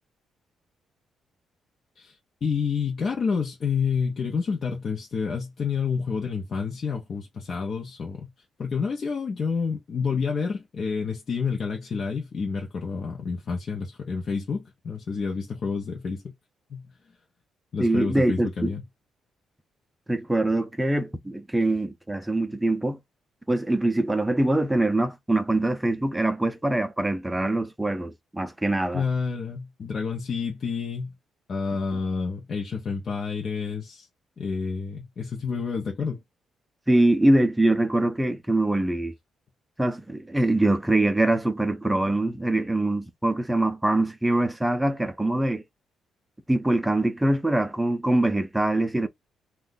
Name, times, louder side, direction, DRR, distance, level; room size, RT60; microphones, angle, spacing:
voice 1, 2.0-8.3 8.6-16.2 16.7-16.9 17.7-18.8 28.9-31.1 31.5-34.1 34.4-36.2, left 5 dB, 50° left, 0.6 m, -29 dB
voice 2, 17.8-18.7 20.1-23.0 23.5-29.0 36.9-39.1 39.8-45.6 46.5-49.1, right 1 dB, 10° right, 0.5 m, -23 dB
2.6 x 2.2 x 3.8 m
cardioid pair, 90°, 0 cm